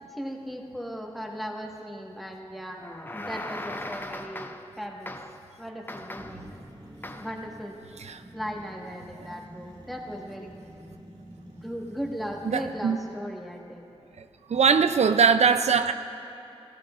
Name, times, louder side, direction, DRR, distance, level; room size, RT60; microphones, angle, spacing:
voice 1, 0.1-2.8 3.1-5.2 5.6-6.5 7.2-7.7 8.3-10.5 11.6-13.9, equal, ahead, 0 dB, 1.4 m, -37 dB
sound 1, 2.8-4.8 5.1-5.5 5.9-6.5 7.0-7.4, left 1 dB, 20° left, 0.5 m, -38 dB
sound 2, 6.2-12.9, right 1 dB, 45° right, 1.6 m, -47 dB
voice 2, 12.4-13.0 14.2-14.3 14.5-15.9, right 6 dB, 85° right, 9 dB, 0.4 m, -21 dB
17.0 x 15.0 x 2.4 m, 2.9 s
wide cardioid pair, 75°, 11 cm